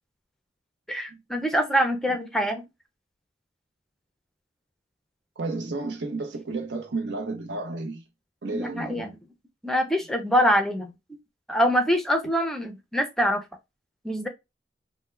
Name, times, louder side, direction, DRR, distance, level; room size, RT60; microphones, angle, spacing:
voice 1, 0.9-2.6 8.5-9.1 9.6-10.9 11.5-13.4 14.0-14.3, equal, 5° left, 0.4 m, -24 dB
voice 2, 5.4-8.0 8.4-9.2, right 3 dB, 85° right, 0.7 m, -32 dB
3.4 x 2.1 x 3.1 m
head